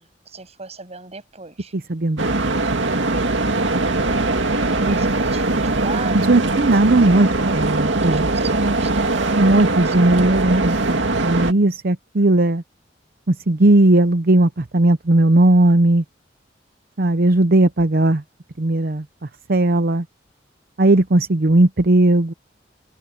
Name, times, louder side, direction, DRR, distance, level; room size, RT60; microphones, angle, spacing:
voice 1, 0.0-1.7 4.7-6.7 7.0-10.0, right 4 dB, 35° right, 7.6 m, -38 dB
voice 2, 1.9-2.7 4.9-5.0 6.1-8.3 9.4-12.6 13.3-16.0 17.0-18.2 18.6-19.0 19.5-20.0 20.8-22.3, right 2 dB, 55° right, 0.8 m, -17 dB
sound 1, 2.2-11.5, right 2 dB, 90° right, 2.1 m, -21 dB
head